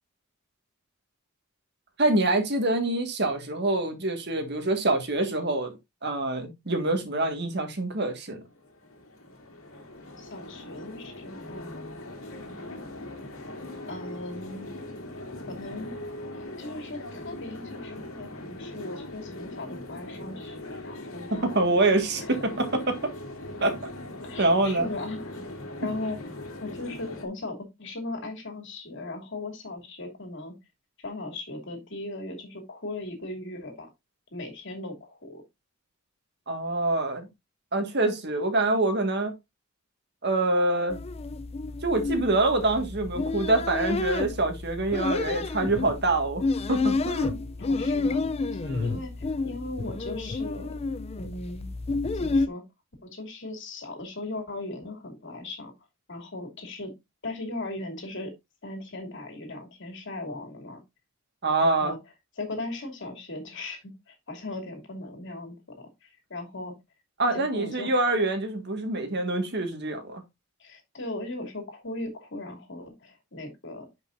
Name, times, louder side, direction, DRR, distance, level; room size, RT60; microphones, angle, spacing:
voice 1, 2.0-5.7 6.0-8.4 21.4-23.1 23.6-23.9 24.4-24.9 36.5-37.3 37.7-39.4 40.2-41.0 41.8-47.4 48.6-49.0 61.4-61.9 67.2-70.2, right 2 dB, 55° right, 1.8 m, -25 dB
sound 1, 8.4-27.2, left 1 dB, 75° left, 2.2 m, -40 dB
voice 2, 10.2-11.8 13.9-14.8 15.5-16.0 16.3-21.6 22.2-22.4 24.2-25.3 25.8-26.2 26.6-30.5 31.0-33.9 34.3-35.4 47.6-48.3 48.5-50.7 51.2-51.7 52.1-52.6 53.0-55.7 56.1-56.9 57.2-58.3 58.6-60.8 61.6-62.0 62.4-66.7 67.3-67.9 70.6-73.9, left 2 dB, 60° left, 2.7 m, -38 dB
sound 2, 40.9-52.5, left 3 dB, 30° left, 0.4 m, -30 dB
11.0 x 5.4 x 2.6 m
head